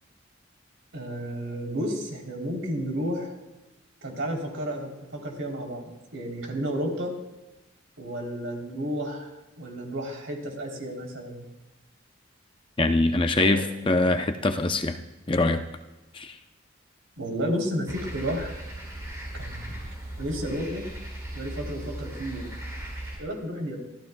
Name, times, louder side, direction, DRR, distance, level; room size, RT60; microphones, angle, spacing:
voice 1, 0.9-3.3 4.0-7.1 8.0-11.4 13.4-13.6 17.2-18.5 19.3-19.7 20.2-20.9 21.3-22.5 23.2-23.8, equal, 80° right, 0 dB, 3.3 m, -32 dB
voice 2, 12.8-15.0 15.3-15.6 16.1-16.4, left 2 dB, 25° left, 7 dB, 0.6 m, -23 dB
sound 1, 17.9-23.2, right 1 dB, 15° right, 4.8 m, -37 dB
24.0 x 14.5 x 2.3 m, 1.0 s
head